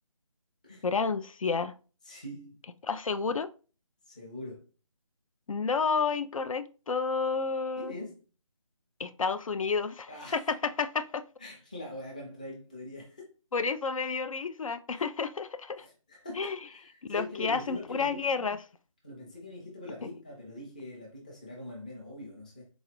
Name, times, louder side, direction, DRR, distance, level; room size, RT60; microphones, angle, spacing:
voice 1, 0.8-1.7 2.8-3.5 5.5-7.9 9.0-11.2 13.5-15.9 16.4-16.6 17.1-18.6, left 5 dB, 75° left, 0.4 m, -30 dB
voice 2, 2.0-2.6 4.1-4.7 7.8-8.2 10.1-10.4 11.4-13.3 14.9-15.0 15.8-18.2 19.0-22.7, left 1 dB, 15° left, 0.5 m, -43 dB
4.0 x 2.3 x 2.9 m
figure-of-eight pair, 165°, 17 cm